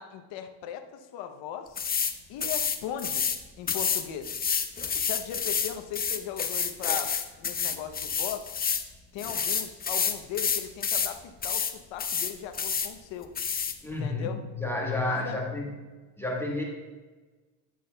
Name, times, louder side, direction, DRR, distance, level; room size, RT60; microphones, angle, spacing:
voice 1, 0.0-1.8 2.3-3.2 3.6-4.4 4.9-8.5 9.1-13.3 13.8-14.4 15.1-15.4, left 9 dB, 70° left, 7 dB, 0.8 m, -38 dB
sound 1, 1.8-2.1 2.4-3.4 3.7-8.9 9.2-11.1 11.4-11.7 12.0-12.9 13.4-13.7, left 6 dB, 20° left, 0.5 m, -29 dB
voice 2, 13.8-14.3 14.6-15.7 16.2-16.6, left 2 dB, 5° left, -1 dB, 1.2 m, -30 dB
12.0 x 6.2 x 2.2 m, 1.3 s
cardioid pair, 95°, 46 cm